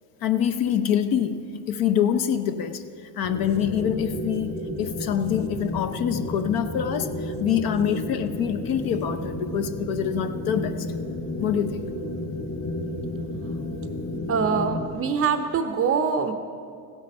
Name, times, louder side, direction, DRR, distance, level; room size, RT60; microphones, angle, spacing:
voice 1, 0.2-2.8 3.2-10.9 11.4-11.9, left 9 dB, 45° left, 10 dB, 0.8 m, -25 dB
sound 1, 3.2-14.9, left 1 dB, 30° left, 2.4 m, -32 dB
voice 2, 14.3-16.3, right 6 dB, 30° right, 8 dB, 0.6 m, -24 dB
15.5 x 8.4 x 5.3 m, 2.3 s
supercardioid pair, 125°, 48 cm